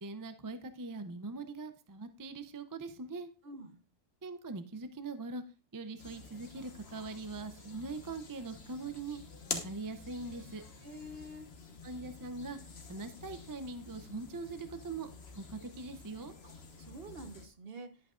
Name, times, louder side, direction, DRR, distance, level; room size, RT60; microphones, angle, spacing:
voice 1, 0.0-3.3 4.2-5.4 5.7-9.2 9.5-10.6 11.8-12.6 12.9-15.1 15.4-16.3, right 3 dB, 30° right, 9 dB, 0.3 m, -42 dB
voice 2, 3.4-3.8 10.8-11.5 16.4-18.0, right 1 dB, 50° right, 8 dB, 1.1 m, -48 dB
sound 1, 6.0-17.5, left 4 dB, 55° left, 1.5 m, -48 dB
11.0 x 8.4 x 2.5 m, 0.33 s
omnidirectional pair, 1.3 m